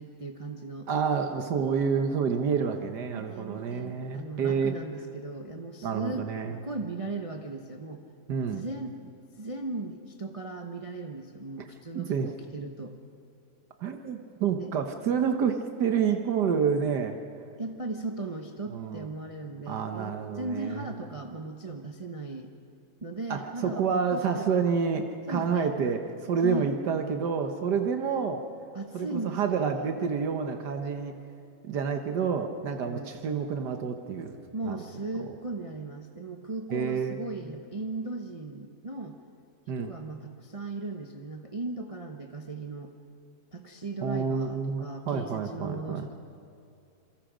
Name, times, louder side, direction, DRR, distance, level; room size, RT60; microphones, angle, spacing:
voice 1, 0.0-0.9 3.1-6.3 6.6-8.0 8.5-13.0 14.6-14.7 17.6-22.5 23.0-23.9 24.1-24.7 25.3-25.8 26.4-26.8 28.7-29.9 32.8-33.1 34.5-39.2 39.8-42.9 43.5-46.1, right 3 dB, 25° right, 3 dB, 0.9 m, -37 dB
voice 2, 0.9-4.7 5.8-6.6 8.3-8.6 11.9-12.3 13.8-17.2 18.7-19.1 19.7-20.8 23.3-28.4 28.9-31.1 31.6-34.3 34.6-34.8 36.7-37.2 39.7-39.9 44.0-46.0, right 6 dB, 80° right, 6 dB, 1.7 m, -28 dB
27.5 x 23.5 x 5.1 m, 2.6 s
omnidirectional pair, 1.8 m